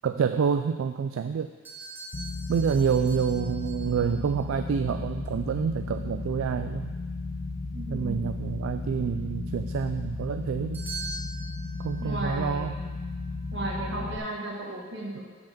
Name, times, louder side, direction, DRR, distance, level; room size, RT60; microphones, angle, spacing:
voice 1, 0.0-1.5 2.5-6.9 7.9-10.8 11.8-12.7, right 6 dB, 75° right, 8 dB, 0.3 m, -28 dB
sound 1, 1.6-4.3 10.7-13.5, right 3 dB, 10° right, 1.5 m, -43 dB
sound 2, 2.1-14.2, left 3 dB, 35° left, 0.4 m, -35 dB
voice 2, 7.7-8.3 12.0-12.8 13.5-15.2, right 1 dB, 60° right, -4 dB, 1.7 m, -34 dB
7.4 x 4.8 x 6.0 m, 1.4 s
head